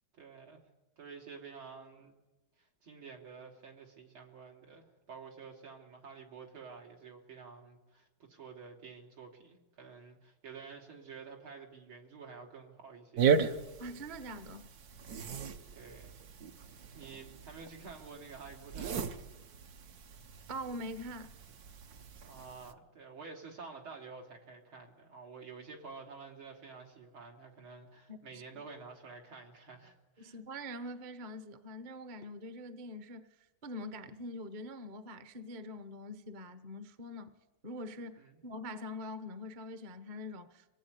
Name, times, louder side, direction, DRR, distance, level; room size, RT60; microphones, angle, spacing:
voice 1, 0.1-0.6 1.0-2.1 2.6-13.4 15.7-16.2 16.7-19.3 22.2-30.4 38.2-38.4, right 5 dB, 80° right, 4.0 m, -50 dB
sound 1, 13.2-22.7, right 6 dB, 55° right, 1.3 m, -36 dB
voice 2, 13.8-14.7 20.5-21.3 28.1-28.4 30.2-33.3 33.6-37.3 37.6-40.7, left 1 dB, 30° right, 1.0 m, -44 dB
25.5 x 18.5 x 9.7 m
omnidirectional pair, 2.3 m